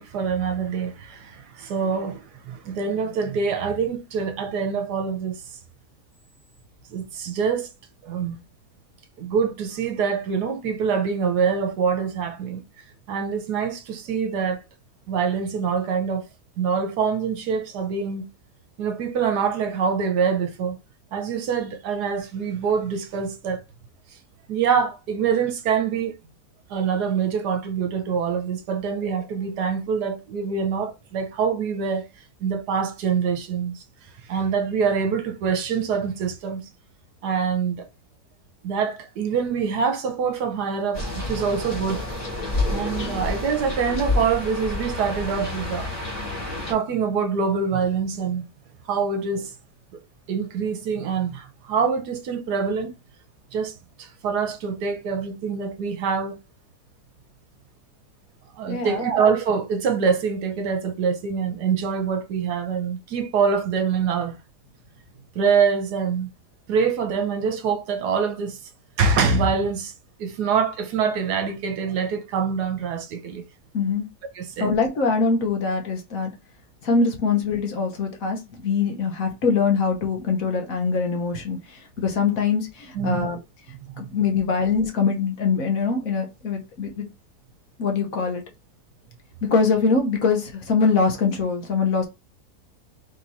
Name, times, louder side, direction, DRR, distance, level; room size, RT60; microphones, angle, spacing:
voice 1, 0.0-5.4 6.9-7.7 8.0-8.4 9.2-12.6 13.1-14.6 15.1-16.3 16.6-18.3 18.8-20.8 21.1-23.6 24.5-26.1 26.7-32.1 32.4-33.8 34.3-36.6 37.2-37.9 38.6-42.0 42.7-46.0 46.7-48.5 48.9-49.5 50.3-52.9 53.5-53.7 54.0-56.4 58.6-64.3 65.3-66.3 66.7-68.6 69.0-69.9 70.2-73.4 74.3-74.7 82.9-83.3, right 6 dB, 75° right, 1.3 m, -25 dB
sound 1, 40.9-46.7, left 2 dB, 25° left, 1.5 m, -29 dB
voice 2, 58.7-59.2 73.7-74.1 74.6-76.3 76.8-83.4 84.0-87.1 87.8-88.4 89.4-92.1, left 5 dB, 60° left, 1.4 m, -23 dB
3.6 x 3.0 x 4.0 m
omnidirectional pair, 1.8 m